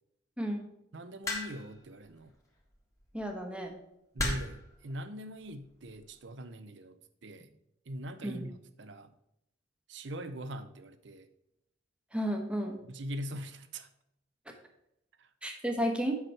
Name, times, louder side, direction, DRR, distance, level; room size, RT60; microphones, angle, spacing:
voice 1, 0.4-0.7 3.1-3.7 8.2-8.4 12.1-12.8 15.4-16.2, equal, 5° right, 3 dB, 1.1 m, -32 dB
voice 2, 0.9-2.3 4.1-7.5 7.9-9.1 9.9-11.3 12.8-13.9 15.2-15.3, equal, 70° right, 11 dB, 0.7 m, -42 dB
sound 1, 1.3-1.8 3.0-3.2 4.2-4.7 5.6-5.9, left 1 dB, 15° left, 1.6 m, -34 dB
8.0 x 6.1 x 4.4 m, 0.81 s
head